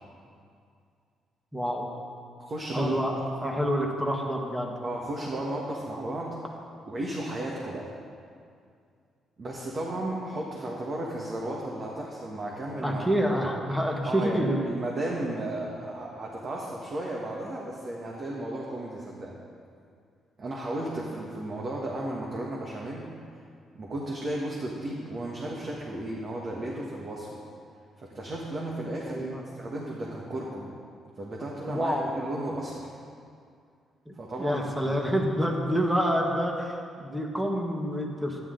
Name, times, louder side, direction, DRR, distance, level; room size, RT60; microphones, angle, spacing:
voice 1, 1.5-1.9 2.7-4.7 12.8-14.6 29.1-29.4 31.7-32.1 34.1-38.4, equal, 5° right, 0 dB, 1.6 m, -28 dB
voice 2, 2.4-3.0 4.8-6.4 6.9-7.9 9.4-13.0 14.0-19.4 20.4-23.1 23.7-27.4 28.0-29.3 29.6-30.8 31.2-32.9 34.1-35.0, right 1 dB, 45° right, -3 dB, 1.5 m, -34 dB
11.5 x 10.5 x 3.9 m, 2.3 s
cardioid pair, 90°, 0 cm